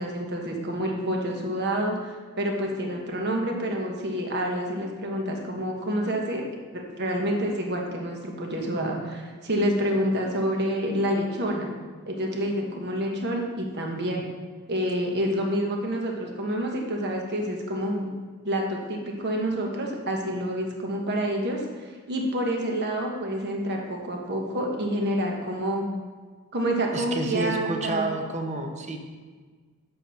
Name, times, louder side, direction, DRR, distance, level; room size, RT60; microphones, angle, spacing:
voice 1, 0.0-6.4 6.7-11.7 12.1-14.2 14.7-18.1 18.4-25.8 26.5-28.1, equal, 50° right, 1 dB, 1.3 m, -28 dB
voice 2, 26.9-29.0, right 2 dB, 30° right, 4 dB, 0.8 m, -30 dB
7.6 x 4.5 x 6.4 m, 1.5 s
head